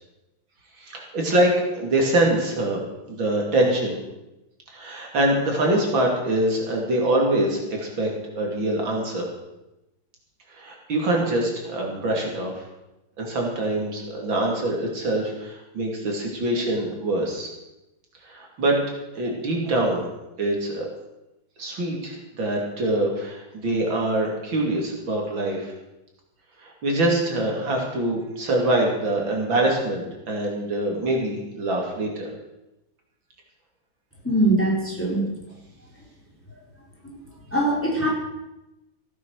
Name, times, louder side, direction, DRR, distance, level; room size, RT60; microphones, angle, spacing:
voice 1, 0.8-2.8 3.1-4.0 4.7-8.1 8.4-9.3 10.5-12.6 13.2-17.5 18.2-18.8 19.2-20.1 20.4-20.9 21.6-25.7 26.6-32.3, right 1 dB, 70° right, 0 dB, 3.4 m, -24 dB
voice 2, 34.2-35.2 37.5-38.1, right 1 dB, 5° left, -3 dB, 3.9 m, -21 dB
15.5 x 9.3 x 6.4 m, 0.96 s
omnidirectional pair, 2.2 m